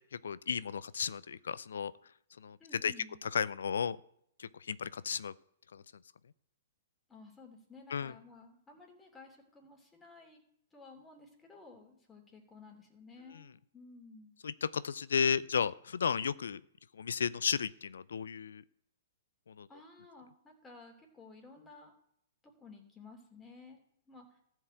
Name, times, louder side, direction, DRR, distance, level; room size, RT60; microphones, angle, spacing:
voice 1, 0.1-1.9 2.4-2.6 2.8-2.9 3.3-4.0 4.4-5.3 5.7-5.8 7.9-8.1 14.4-16.6 16.9-18.6 19.5-19.7, left 6 dB, 75° left, 18 dB, 0.4 m, -34 dB
voice 2, 2.6-3.2 7.1-10.4 10.7-14.4 19.7-21.9 22.4-23.8 24.1-24.4, left 3 dB, 15° left, 1 dB, 2.9 m, -55 dB
14.0 x 4.7 x 7.8 m, 0.73 s
hypercardioid pair, 120°, 0 cm